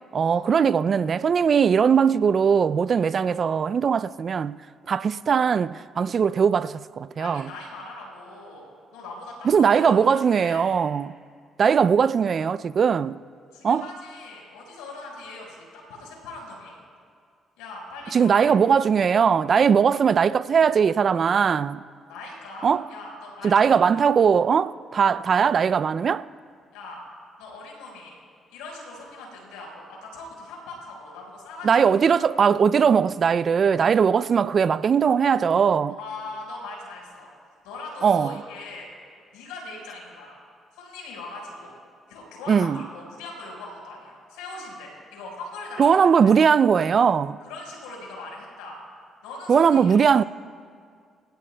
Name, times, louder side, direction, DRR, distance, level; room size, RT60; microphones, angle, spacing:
voice 1, 0.1-4.6 4.9-7.5 9.4-11.1 11.6-13.2 13.6-13.8 18.1-21.8 22.6-22.8 23.4-26.2 31.6-35.9 38.0-38.4 42.5-42.8 45.8-47.4 49.5-50.2, right 6 dB, 55° right, 0.4 m, -20 dB
voice 2, 7.2-10.6 13.5-16.8 17.6-18.6 22.1-24.0 26.7-27.0 27.4-28.1 28.5-32.4 36.0-37.3 37.6-38.9 39.3-40.4 40.7-41.7 42.1-46.1 47.4-48.8 49.2-50.0, left 2 dB, 85° left, 4.9 m, -40 dB
27.0 x 16.0 x 2.3 m
hypercardioid pair, 55°, 0 cm